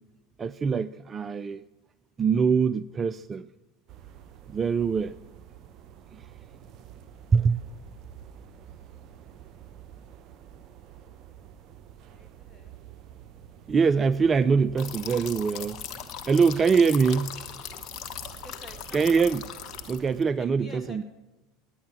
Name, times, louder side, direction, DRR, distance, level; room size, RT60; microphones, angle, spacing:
voice 1, 0.4-1.6 2.2-3.5 4.5-5.2 6.1-6.3 7.3-7.6 13.7-15.8 16.2-17.4 18.9-19.4 19.9-21.0, right 5 dB, 30° right, 15 dB, 0.3 m, -23 dB
sound 1, 3.9-20.2, right 9 dB, 45° right, 0.8 m, -48 dB
voice 2, 12.1-12.8 14.8-15.0 18.4-19.2 20.2-21.0, equal, 15° left, 4 dB, 2.4 m, -48 dB
sound 2, 14.8-20.2, left 10 dB, 50° left, 1.4 m, -39 dB
10.5 x 10.0 x 8.7 m, 1.0 s
hypercardioid pair, 85°, 0 cm